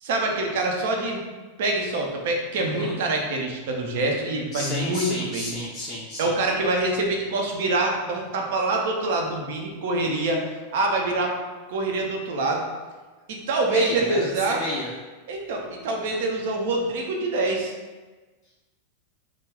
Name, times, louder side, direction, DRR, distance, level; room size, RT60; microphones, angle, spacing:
voice 1, 0.0-1.2 1.6-5.6 6.2-10.4 10.7-11.3 11.7-12.6 13.3-14.6 15.3-17.7, right 2 dB, 55° right, 1 dB, 0.5 m, -25 dB
voice 2, 2.5-3.0 4.5-6.3 13.7-14.9, left 1 dB, 30° left, -4 dB, 0.4 m, -32 dB
2.3 x 2.1 x 3.4 m, 1.3 s
figure-of-eight pair, 90°, 0 cm